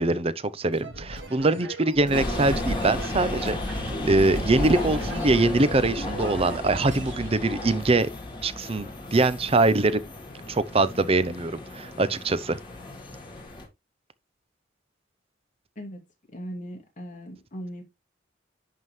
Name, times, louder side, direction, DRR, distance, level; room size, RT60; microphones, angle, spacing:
voice 1, 0.0-8.1 8.4-10.0 10.5-12.6, right 2 dB, 30° right, 0.6 m, -23 dB
sound 1, 0.7-7.4, right 2 dB, 70° right, 1.9 m, -40 dB
sound 2, 2.1-13.6, left 1 dB, 25° left, 2.2 m, -33 dB
voice 2, 16.3-17.8, equal, 40° left, 2.4 m, -38 dB
11.0 x 3.7 x 3.1 m
head